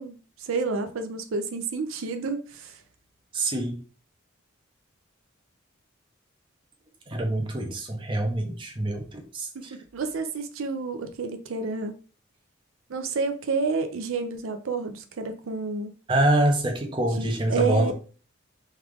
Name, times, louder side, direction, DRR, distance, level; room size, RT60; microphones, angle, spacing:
voice 1, 0.0-2.8 9.5-11.9 12.9-15.9 17.2-17.9, right 4 dB, 85° right, 0.5 m, -30 dB
voice 2, 3.3-3.8 7.1-9.8 16.1-17.9, right 1 dB, 25° right, 0.5 m, -25 dB
3.2 x 2.4 x 3.4 m
head